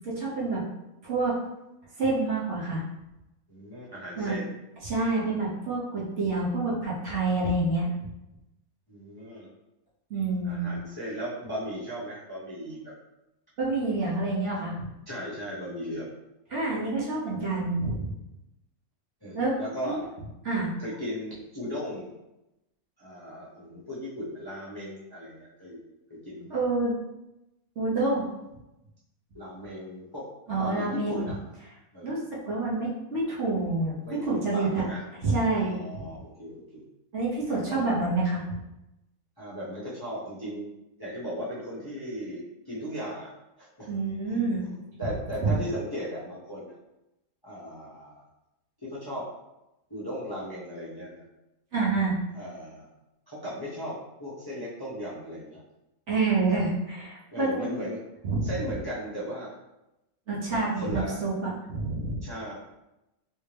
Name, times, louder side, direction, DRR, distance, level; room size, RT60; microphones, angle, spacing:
voice 1, 0.0-0.6 1.0-1.4 2.0-2.8 4.2-4.4 4.8-7.9 10.1-10.7 13.6-14.9 16.5-18.1 19.3-19.6 19.8-20.0 20.4-20.7 26.5-27.0 27.8-28.3 30.5-31.3 32.0-32.2 32.5-33.9 34.3-34.9 35.2-36.1 37.1-38.4 43.9-44.6 45.4-45.5 51.7-52.1 56.1-57.7 58.2-58.5 60.3-62.2, right 3 dB, 55° right, -6 dB, 1.1 m, -27 dB
voice 2, 3.5-4.5 8.9-9.5 10.5-12.9 15.1-16.1 19.2-20.0 20.8-22.1 23.0-25.8 26.1-26.6 29.3-31.4 31.9-32.2 34.0-35.0 35.5-36.8 37.7-37.9 39.4-40.7 41.0-43.9 44.3-46.8 47.4-48.2 48.8-49.3 49.9-51.2 52.3-52.9 53.3-55.6 57.3-58.0 58.4-59.5 60.5-61.2 62.2-62.5, equal, 20° left, -9 dB, 0.8 m, -37 dB
3.3 x 2.7 x 3.3 m, 0.92 s
omnidirectional pair, 1.6 m